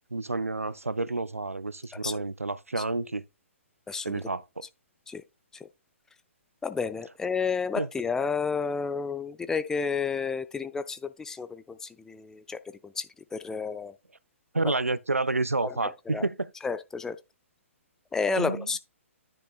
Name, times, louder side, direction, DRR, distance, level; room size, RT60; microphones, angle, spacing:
voice 1, 0.1-3.2 4.0-4.7 7.8-7.9 14.5-16.5 18.4-18.8, right 3 dB, 85° right, 0.5 m, -29 dB
voice 2, 3.9-4.2 5.1-5.2 5.6-5.7 6.6-13.1 13.3-13.9 14.7-14.8 15.6-16.3 16.6-17.2 18.1-18.8, left 5 dB, 5° left, 0.4 m, -31 dB
10.0 x 6.7 x 2.4 m
figure-of-eight pair, 125°, 7 cm